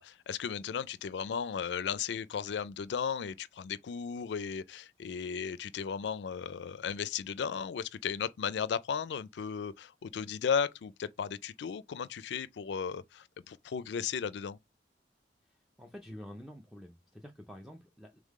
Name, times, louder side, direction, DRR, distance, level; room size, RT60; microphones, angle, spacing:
voice 1, 0.0-14.6, left 7 dB, 70° left, 0.4 m, -35 dB
voice 2, 15.4-18.2, equal, ahead, 0.4 m, -49 dB
3.7 x 3.4 x 3.6 m
head